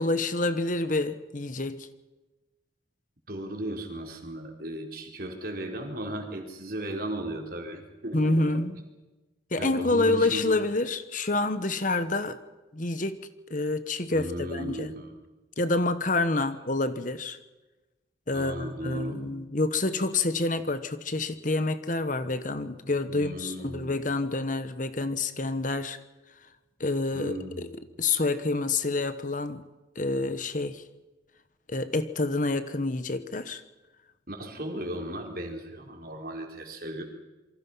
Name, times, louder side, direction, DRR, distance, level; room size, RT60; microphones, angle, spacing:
voice 1, 0.0-1.9 8.1-8.7 9.5-12.4 12.7-14.9 15.6-17.4 18.3-26.0 26.8-27.7 28.0-29.6 29.9-30.8 31.7-33.6, left 2 dB, 45° left, 1.2 m, -28 dB
voice 2, 3.3-8.5 9.6-10.6 14.1-15.1 16.3-16.5 18.3-19.3 23.1-24.0 27.1-27.7 34.3-37.0, right 1 dB, 50° right, 4.2 m, -36 dB
28.0 x 24.0 x 5.7 m
head